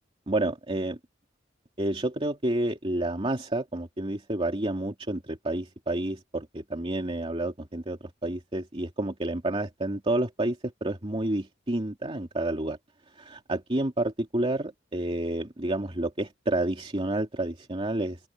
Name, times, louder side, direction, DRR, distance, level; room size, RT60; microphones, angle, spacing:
voice 1, 0.3-1.0 1.8-12.8 13.2-18.2, right 1 dB, 30° right, 2.6 m, -29 dB
open air
head